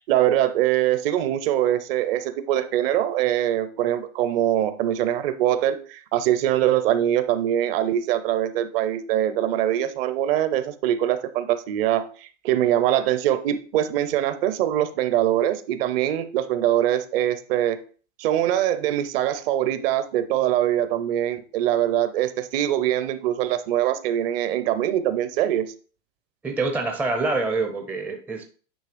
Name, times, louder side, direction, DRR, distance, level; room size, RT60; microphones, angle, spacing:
voice 1, 0.0-17.8 18.2-25.7, right 12 dB, 50° right, 12 dB, 0.8 m, -23 dB
voice 2, 26.4-28.4, right 3 dB, 5° right, 4 dB, 0.5 m, -26 dB
8.9 x 3.0 x 5.1 m, 0.40 s
hypercardioid pair, 135°, 38 cm